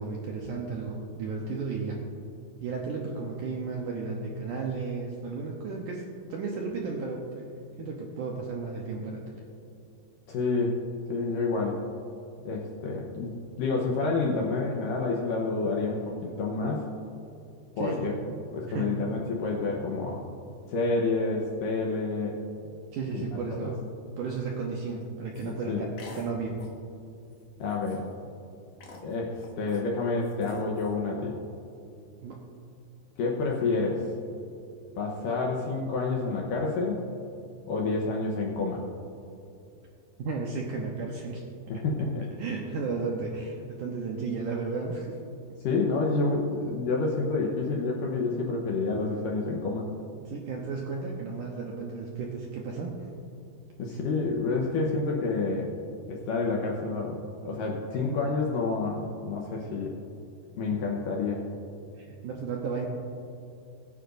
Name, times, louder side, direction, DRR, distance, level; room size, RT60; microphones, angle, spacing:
voice 1, 0.0-2.0 2.6-6.0 6.3-7.2 7.8-9.4 17.8-18.3 18.7-19.1 22.9-23.8 24.2-25.9 26.2-26.6 32.2-32.4 40.2-41.4 42.4-45.2 50.3-53.1 55.8-55.9 57.5-57.8 59.3-59.4 62.0-62.9, right 4 dB, 85° right, -1 dB, 1.8 m, -34 dB
voice 2, 10.3-10.8 11.1-11.8 12.4-16.8 17.8-18.1 18.5-20.2 20.7-22.4 23.1-23.7 25.4-25.9 27.6-28.1 29.0-31.4 33.2-34.1 35.0-37.0 37.7-38.8 41.7-42.2 45.6-49.9 53.8-55.7 56.1-60.0 60.6-61.4, left 3 dB, 75° left, -1 dB, 2.0 m, -29 dB
sound 1, 25.3-25.5 26.0-26.3 26.6-26.8 27.3-27.4 27.7-28.2 28.8-29.8 30.2-30.9, left 3 dB, 55° left, 1.9 m, -47 dB
21.0 x 9.9 x 2.6 m, 2.7 s
omnidirectional pair, 5.0 m